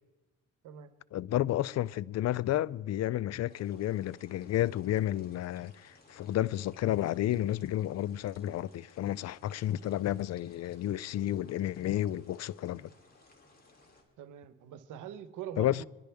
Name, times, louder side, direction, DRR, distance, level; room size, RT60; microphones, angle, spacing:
voice 1, 1.1-12.9 15.6-15.8, left 13 dB, 60° left, 0.4 m, -31 dB
sound 1, 3.5-14.0, left 3 dB, 30° left, 3.0 m, -61 dB
voice 2, 14.2-15.9, right 9 dB, 85° right, 1.0 m, -43 dB
23.5 x 11.5 x 3.4 m
cardioid pair, 90°, 30 cm